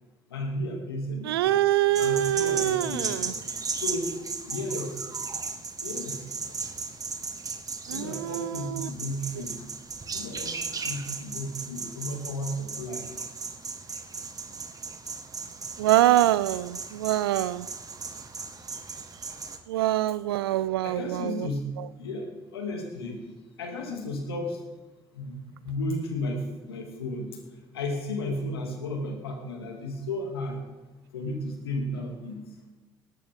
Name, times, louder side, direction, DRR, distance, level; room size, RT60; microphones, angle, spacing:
voice 1, 0.3-1.5 1.9-3.4 3.7-4.1 4.5-5.0 5.8-6.5 7.9-9.7 10.1-10.6 10.8-13.1 15.0-15.1 20.8-21.6 21.9-23.2 23.6-24.6 25.1-27.3 27.7-30.6 31.1-32.4, left 1 dB, 85° left, 2 dB, 2.5 m, -34 dB
voice 2, 1.3-3.2 7.9-8.5 15.8-17.6 19.7-21.2, right 14 dB, 80° right, 19 dB, 0.4 m, -24 dB
sound 1, 1.9-19.6, right 4 dB, 30° right, 1.7 m, -36 dB
18.0 x 14.0 x 3.7 m, 1.2 s
hypercardioid pair, 55°, 12 cm